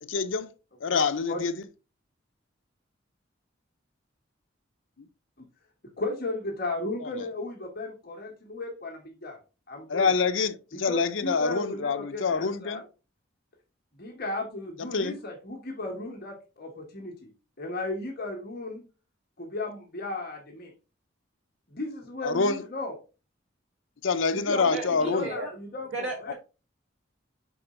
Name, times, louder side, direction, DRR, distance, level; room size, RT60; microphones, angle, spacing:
voice 1, 0.0-0.5 0.8-1.5 9.9-12.8 14.9-15.2 22.2-22.6 24.0-25.3, left 4 dB, 85° left, 0.7 m, -26 dB
voice 2, 0.9-1.5 5.4-5.5 6.0-9.4 9.7-10.1 10.7-12.8 13.9-17.3 17.6-18.8 19.4-20.7 21.7-23.0 24.3-26.3, left 2 dB, 50° left, 1.7 m, -35 dB
voice 3, 24.7-25.5 25.9-26.3, right 1 dB, 90° right, 1.6 m, -34 dB
6.4 x 4.3 x 3.8 m
head